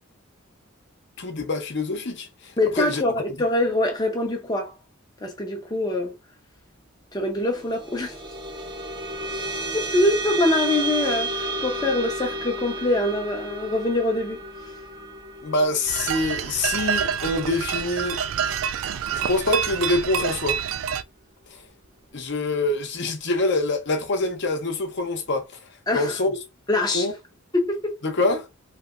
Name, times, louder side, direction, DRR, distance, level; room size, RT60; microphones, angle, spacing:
voice 1, 1.2-3.0 3.3-3.4 15.4-18.6 19.1-20.6 22.1-25.5 25.9-26.4 26.9-27.1 28.0-28.5, left 2 dB, 55° left, 0.7 m, -25 dB
voice 2, 2.6-4.7 5.2-6.1 7.1-8.1 9.9-14.4 25.9-26.2 26.7-27.1 27.5-28.0, left 2 dB, 20° left, 0.6 m, -24 dB
sound 1, 7.5-18.3, right 2 dB, 20° right, 0.7 m, -32 dB
sound 2, 15.9-21.0, right 8 dB, 65° right, 0.3 m, -27 dB
3.1 x 2.8 x 2.4 m
head